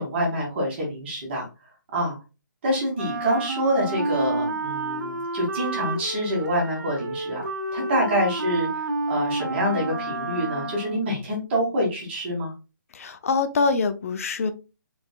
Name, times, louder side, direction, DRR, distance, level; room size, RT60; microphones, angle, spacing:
voice 1, 0.0-1.5 1.9-2.2 2.6-12.5, equal, 30° right, 2.5 m, -26 dB
Wind instrument woodwind instrument, 2.9-11.1, right 2 dB, 60° right, 1.0 m, -30 dB
voice 2, 12.9-14.5, left 4 dB, 45° left, 0.6 m, -24 dB
5.0 x 4.2 x 2.3 m
hypercardioid pair, 165°, 11 cm